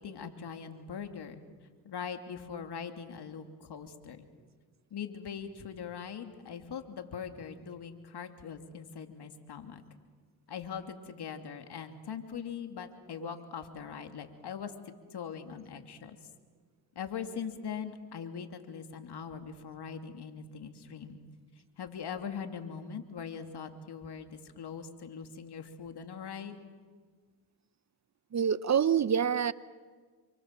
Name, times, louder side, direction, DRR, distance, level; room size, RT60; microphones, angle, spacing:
voice 1, 0.0-1.4 1.8-4.3 4.9-9.8 10.5-14.7 15.1-16.2 16.9-21.2 21.8-26.6, left 7 dB, 60° left, 6 dB, 2.9 m, -41 dB
voice 2, 28.3-29.5, right 8 dB, 40° right, 17 dB, 0.8 m, -26 dB
28.0 x 24.5 x 7.6 m, 1.5 s
supercardioid pair, 60°, 45 cm